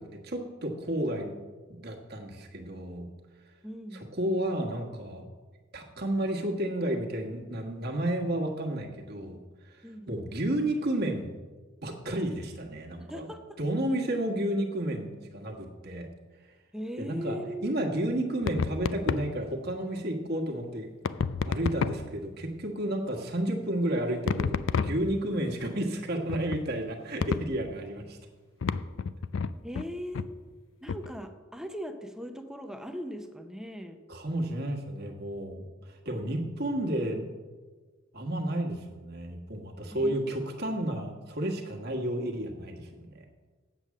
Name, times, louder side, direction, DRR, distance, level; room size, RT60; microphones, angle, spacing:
voice 1, 0.0-1.3 1.7-3.1 4.1-5.2 5.7-9.4 10.1-11.3 11.8-13.2 13.6-16.1 17.0-20.9 21.4-28.2 34.1-35.7 36.0-37.3 38.1-43.2, right 1 dB, 55° right, 1 dB, 1.5 m, -31 dB
voice 2, 3.6-4.1 9.8-10.3 13.0-13.6 16.7-17.7 29.6-30.2 30.8-34.0 39.9-40.4, equal, 5° right, 7 dB, 0.7 m, -39 dB
sound 1, 18.4-19.3 21.0-22.2 24.3-25.3 26.3-26.6 27.2-27.6 28.6-29.9 30.1-30.3 30.9-31.1, left 5 dB, 75° left, 0.4 m, -30 dB
8.2 x 7.1 x 7.3 m, 1.4 s
head